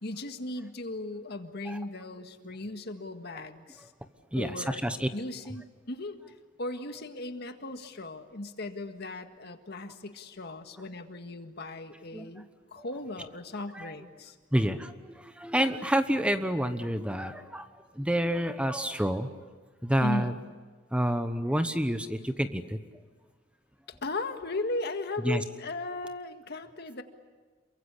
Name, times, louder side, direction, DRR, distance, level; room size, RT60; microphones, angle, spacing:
voice 1, 0.0-3.9 4.4-4.8 5.1-6.2 6.6-14.4 20.0-20.4 23.9-27.0, left 2 dB, 55° left, 7 dB, 1.8 m, -37 dB
voice 2, 4.3-5.1 12.1-12.3 13.7-13.9 14.5-17.7 17.9-19.3 19.8-20.3 20.9-22.8 25.2-25.4, equal, 5° right, 9 dB, 1.0 m, -28 dB
28.0 x 23.5 x 8.4 m, 1.5 s
head